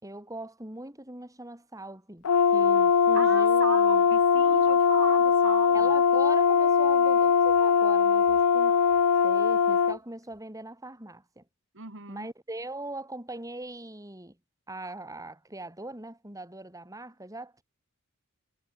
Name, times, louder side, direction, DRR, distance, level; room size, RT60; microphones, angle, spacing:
voice 1, 0.0-4.0 5.7-8.8 9.2-11.4 12.1-14.4 14.7-17.6, right 2 dB, 15° right, 6.4 m, -41 dB
Brass instrument, 2.2-10.0, left 6 dB, 90° left, 0.6 m, -21 dB
voice 2, 3.1-5.9 11.7-12.3, right 4 dB, 60° right, 4.9 m, -36 dB
head